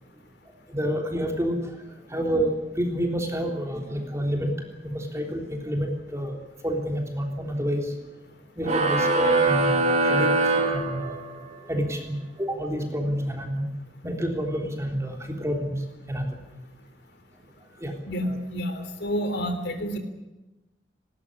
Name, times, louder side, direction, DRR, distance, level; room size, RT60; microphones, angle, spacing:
voice 1, 0.7-1.8 2.1-4.5 4.8-6.4 6.6-8.0 8.6-11.2 11.6-13.7 14.0-15.8 16.1-16.3 17.8-17.9, equal, 15° right, 2 dB, 3.5 m, -28 dB
sound 1, 8.6-11.5, right 2 dB, 40° right, 2.8 m, -23 dB
voice 2, 18.1-20.0, equal, 65° left, 8 dB, 3.5 m, -29 dB
19.5 x 18.5 x 9.9 m, 1.0 s
head